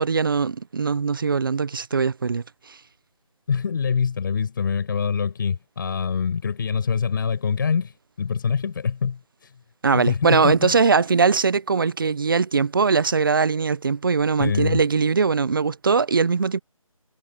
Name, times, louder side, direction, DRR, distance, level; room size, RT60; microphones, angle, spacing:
voice 1, 0.0-2.8 9.8-16.6, right 5 dB, 35° right, 0.8 m, -21 dB
voice 2, 3.5-9.5 9.9-10.7 14.4-14.8, left 6 dB, 35° left, 7.7 m, -25 dB
figure-of-eight pair, 165°, 18 cm